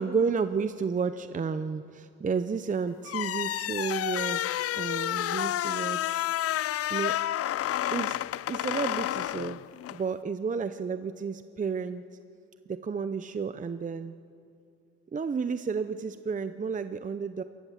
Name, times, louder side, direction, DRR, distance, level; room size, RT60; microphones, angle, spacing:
voice 1, 0.0-4.4 4.8-6.3 6.9-7.2 7.9-8.2 8.5-9.6 9.9-12.0 12.7-14.1 15.1-17.4, right 5 dB, 25° right, 11 dB, 0.6 m, -31 dB
sound 1, 3.1-10.0, left 13 dB, 50° left, 0.4 m, -30 dB
27.0 x 15.0 x 7.4 m, 2.5 s
cardioid pair, 90°, 30 cm